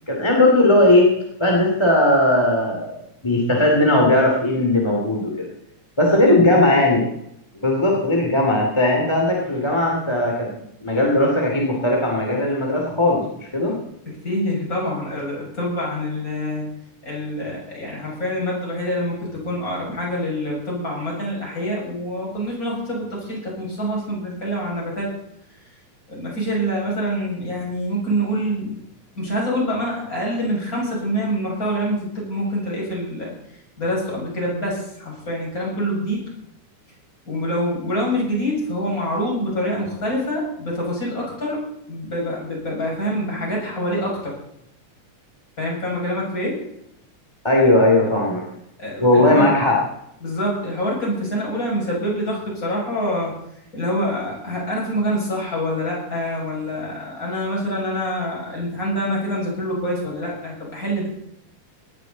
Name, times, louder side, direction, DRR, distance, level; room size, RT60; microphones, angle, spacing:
voice 1, 0.1-1.1 1.4-5.5 6.0-7.0 7.5-10.5 10.8-13.8 47.4-48.4 49.0-49.8, left 1 dB, 10° left, -1 dB, 2.3 m, -18 dB
voice 2, 6.1-6.4 13.7-13.8 14.1-16.7 17.0-25.1 26.1-28.8 29.2-36.3 37.3-44.3 45.6-46.6 48.8-49.5 50.2-53.4 53.7-61.1, equal, 25° left, -3 dB, 7.3 m, -26 dB
19.0 x 14.0 x 4.1 m, 0.79 s
omnidirectional pair, 3.6 m